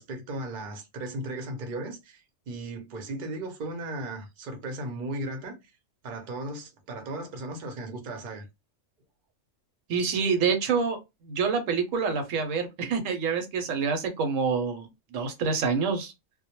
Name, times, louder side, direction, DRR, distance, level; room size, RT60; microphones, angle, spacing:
voice 1, 0.0-5.5 6.0-8.5, right 2 dB, 50° right, 0.7 m, -36 dB
voice 2, 9.9-11.0 11.2-16.1, right 5 dB, 80° right, 1.0 m, -27 dB
2.1 x 2.1 x 2.9 m
omnidirectional pair, 1.3 m